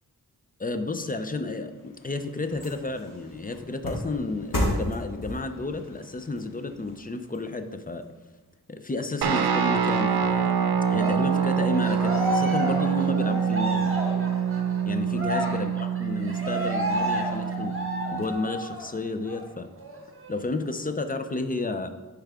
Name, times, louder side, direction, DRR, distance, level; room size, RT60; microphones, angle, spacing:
voice 1, 0.6-8.0 8.7-13.9 14.9-17.8 18.1-19.7 20.3-21.9, left 2 dB, 25° left, 8 dB, 0.5 m, -32 dB
sound 1, 1.6-8.0 8.5-8.6, equal, 60° left, 1.9 m, -35 dB
Guitar, 9.2-18.3, right 7 dB, 75° right, 0.6 m, -25 dB
Cheering, 10.9-18.9 19.2-19.4 19.8-20.8, equal, 35° right, 1.4 m, -31 dB
10.0 x 4.8 x 3.6 m, 1.3 s
wide cardioid pair, 95°, 37 cm